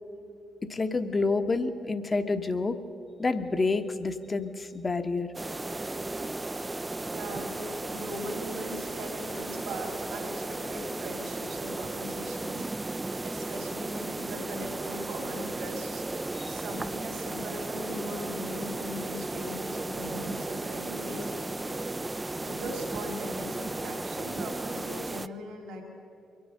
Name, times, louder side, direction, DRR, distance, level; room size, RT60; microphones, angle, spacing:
voice 1, 0.6-2.8 3.2-5.3 16.3-16.6, left 3 dB, 35° left, 8 dB, 1.1 m, -28 dB
sound 1, 5.3-25.3, right 2 dB, 20° right, 0.4 m, -35 dB
voice 2, 7.1-12.6 13.2-16.1 16.5-21.8 22.4-25.8, equal, 75° right, 2 dB, 2.4 m, -40 dB
23.5 x 7.9 x 6.5 m, 2.6 s
hypercardioid pair, 45°, 0 cm